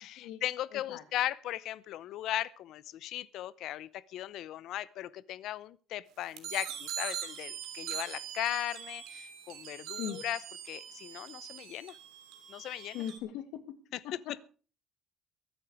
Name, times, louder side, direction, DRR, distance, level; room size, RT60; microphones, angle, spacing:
voice 1, 0.0-10.4 10.7-12.0 12.5-13.0, left 13 dB, 60° left, 0.7 m, -37 dB
voice 2, 0.7-1.0 9.9-10.2 12.9-13.8 14.0-14.4, left 10 dB, 80° left, 2.2 m, -40 dB
sound 1, 6.4-13.2, right 9 dB, 75° right, 3.1 m, -42 dB
23.0 x 8.3 x 4.8 m
cardioid pair, 170°, 0 cm